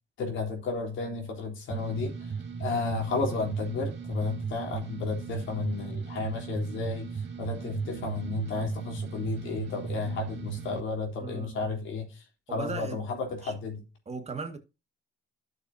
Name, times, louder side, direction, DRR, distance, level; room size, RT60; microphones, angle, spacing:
voice 1, 0.2-2.3 2.6-12.2 12.5-13.8, left 4 dB, 75° left, 3.8 m, -33 dB
sound 1, 1.7-10.8, right 6 dB, 60° right, 2.4 m, -36 dB
voice 2, 11.2-11.8 12.5-13.0 13.4-13.6 14.1-14.6, right 4 dB, 35° right, 2.1 m, -37 dB
13.0 x 6.7 x 2.8 m
cardioid pair, 90°, 20 cm